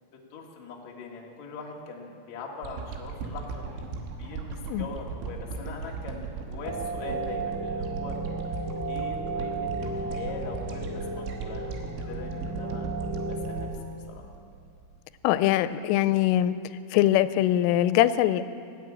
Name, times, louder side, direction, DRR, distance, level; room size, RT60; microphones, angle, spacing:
voice 1, 0.3-8.2 8.9-12.9 13.2-13.7 14.1-14.3, left 4 dB, 60° left, -1 dB, 2.0 m, -41 dB
sound 1, 2.6-15.0 15.4-15.5, right 5 dB, 85° right, 3.7 m, -37 dB
sound 2, 6.6-13.7, right 3 dB, 20° right, 2.2 m, -34 dB
voice 2, 15.2-16.5 16.9-18.4, left 13 dB, 90° left, 14 dB, 3.1 m, -22 dB
19.0 x 8.8 x 8.5 m, 2.4 s
omnidirectional pair, 5.6 m